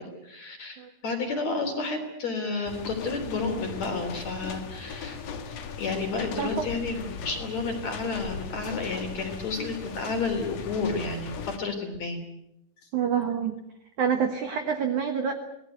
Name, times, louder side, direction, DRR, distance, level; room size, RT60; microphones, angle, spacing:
voice 1, 0.0-5.2 5.5-12.2, left 3 dB, 40° left, 5 dB, 4.2 m, -31 dB
sound 1, 2.6-11.6, left 6 dB, 70° left, 1.5 m, -38 dB
voice 2, 12.9-13.5 14.0-15.3, right 7 dB, 70° right, 6 dB, 1.8 m, -27 dB
26.5 x 19.0 x 8.1 m, 0.83 s
omnidirectional pair, 5.7 m